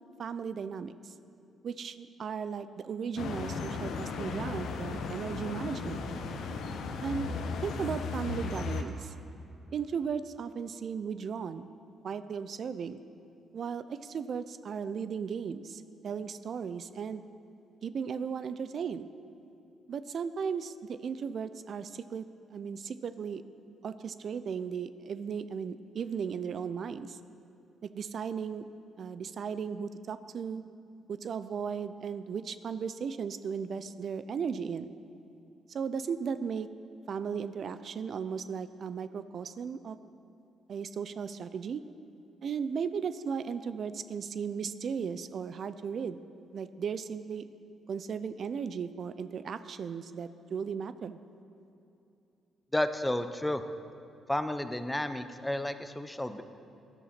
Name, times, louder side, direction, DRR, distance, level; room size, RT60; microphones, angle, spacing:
voice 1, 0.2-1.1 1.6-6.0 7.0-7.3 7.6-9.1 9.7-11.7 12.0-13.0 13.5-17.3 17.8-19.1 19.9-22.2 22.5-23.4 23.8-27.2 27.8-28.6 29.0-30.6 31.1-35.0 35.7-36.7 37.1-40.0 40.7-41.8 42.4-46.2 46.5-47.4 47.9-51.2, right 6 dB, 55° right, 13 dB, 0.4 m, -36 dB
sound 1, 3.2-8.8, left 4 dB, 75° left, 0.9 m, -36 dB
voice 2, 52.7-53.6 54.3-56.4, left 1 dB, 10° left, 10 dB, 0.6 m, -31 dB
13.0 x 11.0 x 4.3 m, 2.8 s
cardioid pair, 90°, 0 cm